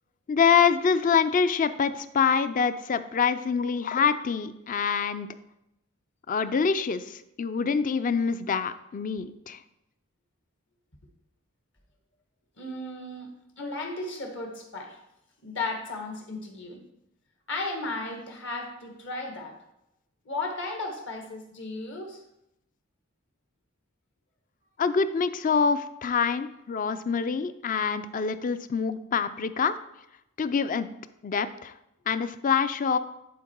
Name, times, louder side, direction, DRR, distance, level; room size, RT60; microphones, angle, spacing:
voice 1, 0.3-5.3 6.3-9.6 24.8-29.7 30.4-30.9 31.2-31.7 32.1-33.0, left 6 dB, 40° left, 13 dB, 0.4 m, -25 dB
voice 2, 12.6-13.3 13.6-15.0 15.4-16.8 17.5-19.6 20.2-22.2, left 2 dB, 60° left, 2 dB, 1.7 m, -35 dB
11.0 x 4.6 x 4.5 m, 0.85 s
head